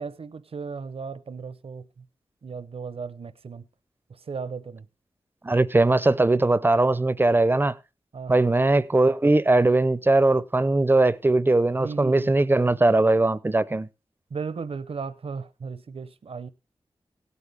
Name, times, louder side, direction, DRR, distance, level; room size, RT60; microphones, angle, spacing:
voice 1, 0.0-1.9 2.4-3.6 4.3-4.9 8.1-8.6 11.8-12.3 14.3-16.5, right 5 dB, 70° right, 0.7 m, -35 dB
voice 2, 5.4-7.8 8.3-13.9, right 2 dB, 20° right, 0.5 m, -20 dB
17.0 x 8.3 x 3.4 m
wide cardioid pair, 95°, 10 cm